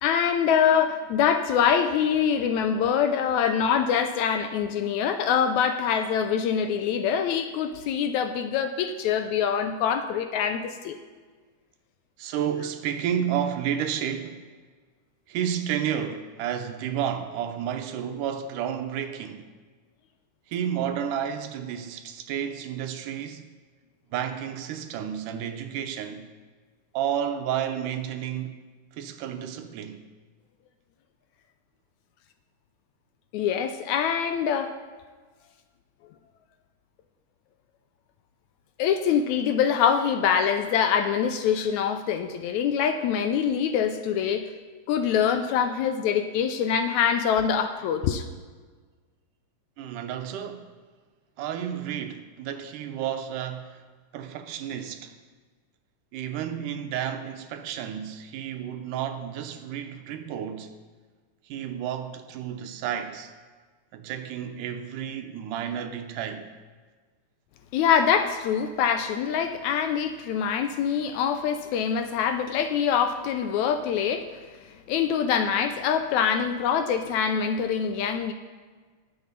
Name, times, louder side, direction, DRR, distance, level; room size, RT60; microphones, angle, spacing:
voice 1, 0.0-11.0 33.3-34.8 38.8-44.5 44.9-48.3 67.7-74.3 74.9-78.3, left 7 dB, 80° left, 1.8 m, -24 dB
voice 2, 12.2-14.5 15.3-19.5 20.5-23.5 24.1-26.3 26.9-28.6 28.9-30.0 49.8-50.7 51.4-53.8 54.1-55.1 56.1-60.8 61.4-63.3 63.9-66.5, right 9 dB, 85° right, 2.4 m, -31 dB
20.5 x 6.9 x 4.0 m
omnidirectional pair, 3.6 m